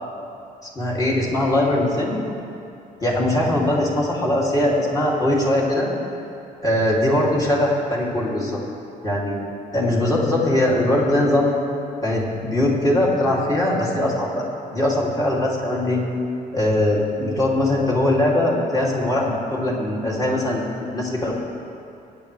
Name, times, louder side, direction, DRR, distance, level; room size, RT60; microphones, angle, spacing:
voice 1, 0.7-2.2 3.0-5.9 6.6-8.6 9.0-9.4 9.7-11.5 12.0-14.5 14.7-16.0 16.5-21.3, left 1 dB, 25° left, -5 dB, 2.9 m, -21 dB
22.5 x 9.5 x 3.4 m, 2.6 s
cardioid pair, 125°, 16 cm